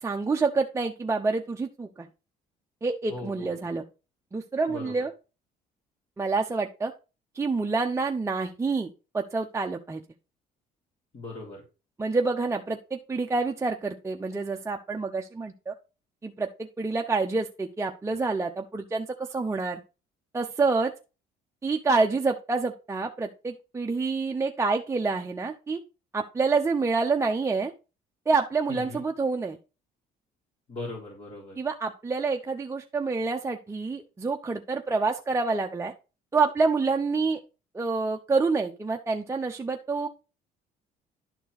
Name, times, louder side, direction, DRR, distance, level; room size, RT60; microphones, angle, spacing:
voice 1, 0.0-2.1 2.8-3.8 4.3-5.1 6.2-6.9 7.3-8.9 9.1-10.0 12.0-15.7 16.2-19.8 20.3-20.9 21.6-25.8 26.1-27.7 28.3-29.6 31.6-35.9 36.3-37.4 37.7-40.1, right 4 dB, 15° right, 3 dB, 0.8 m, -27 dB
voice 2, 3.1-3.7 4.7-5.1 11.1-11.6 28.7-29.0 30.7-31.6, left 2 dB, 35° left, -4 dB, 3.8 m, -39 dB
11.5 x 4.5 x 4.1 m, 0.31 s
cardioid pair, 110°, 17 cm